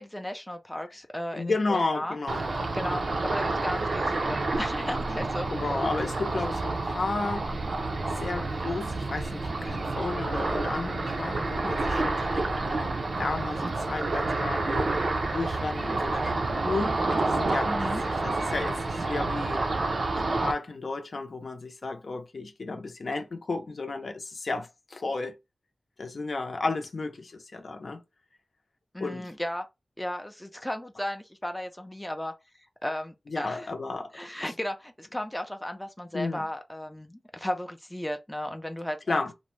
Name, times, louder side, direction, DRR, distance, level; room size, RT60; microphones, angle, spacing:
voice 1, 0.0-2.2 2.7-5.5 17.6-18.0 28.9-29.7 30.0-32.3 32.8-33.7 34.1-39.2, left 1 dB, 10° left, 0.4 m, -35 dB
voice 2, 1.3-2.5 5.5-7.5 8.1-12.9 13.2-15.0 15.3-19.6 20.1-25.3 26.0-28.0 29.0-29.3 33.3-34.1 34.4-34.5 36.1-36.5 39.1-39.3, left 3 dB, 70° left, 0.5 m, -33 dB
Ocean, 2.3-20.5, right 2 dB, 70° right, 0.5 m, -29 dB
2.5 x 2.0 x 3.1 m
wide cardioid pair, 80°, 0 cm